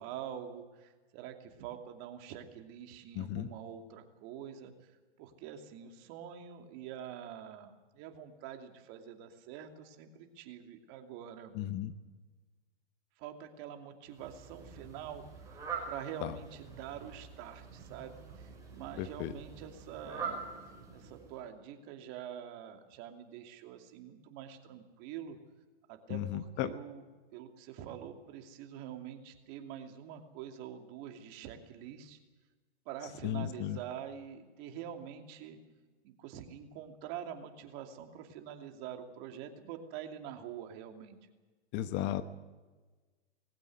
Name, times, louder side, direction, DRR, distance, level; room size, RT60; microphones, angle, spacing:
voice 1, 0.0-11.5 13.2-20.4 20.9-25.4 25.9-27.0 27.3-32.2 32.9-35.6 36.0-41.2, right 9 dB, 40° right, 5 dB, 2.7 m, -46 dB
voice 2, 3.1-3.5 11.5-11.9 16.2-16.3 19.0-19.3 26.1-26.7 33.2-33.8 41.7-42.2, left 12 dB, 35° left, 12 dB, 1.0 m, -35 dB
Fowl, 14.1-21.5, right 5 dB, 10° right, 5.4 m, -45 dB
20.0 x 16.5 x 9.3 m, 1.3 s
hypercardioid pair, 125°, 31 cm